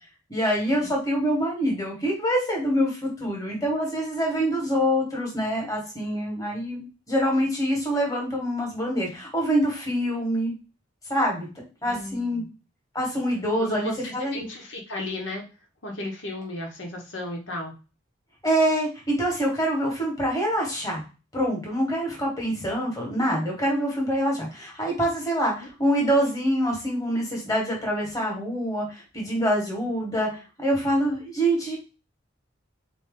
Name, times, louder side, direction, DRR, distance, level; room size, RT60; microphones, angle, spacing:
voice 1, 0.3-10.5 11.1-11.5 11.8-12.4 12.9-14.4 18.4-21.0 21.3-30.3 30.6-31.8, equal, 15° left, -1 dB, 1.5 m, -25 dB
voice 2, 11.8-12.5 13.6-15.4 15.8-17.7 25.6-25.7, left 1 dB, 70° left, 0 dB, 1.3 m, -34 dB
4.1 x 3.0 x 3.7 m, 0.31 s
head